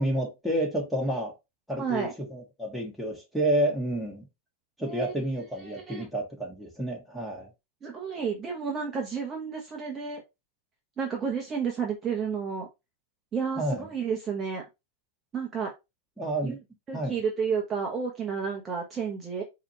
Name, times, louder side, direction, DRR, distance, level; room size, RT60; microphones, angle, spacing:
voice 1, 0.0-1.3 1.7-4.3 4.8-7.5 13.6-13.9 16.2-16.6 16.9-17.1, right 1 dB, ahead, 1.5 m, -30 dB
voice 2, 1.8-2.1 4.8-5.1 5.6-6.1 7.8-10.2 11.0-12.7 13.3-14.6 15.3-15.7 16.4-16.6 16.9-19.4, right 6 dB, 25° right, 0.9 m, -31 dB
4.8 x 2.9 x 2.8 m
hypercardioid pair, 125°, 0 cm